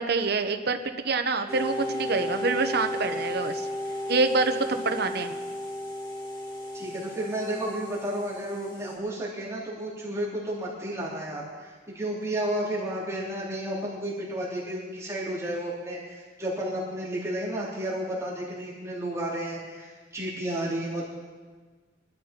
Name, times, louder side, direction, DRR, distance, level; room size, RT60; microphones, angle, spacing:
voice 1, 0.0-3.7 4.1-5.3, right 3 dB, 60° right, 7 dB, 1.1 m, -26 dB
sound 1, 1.5-8.9, left 1 dB, 25° left, 3.1 m, -34 dB
voice 2, 6.7-21.0, right 1 dB, 15° right, -6 dB, 3.5 m, -32 dB
22.0 x 12.5 x 4.5 m, 1.4 s
head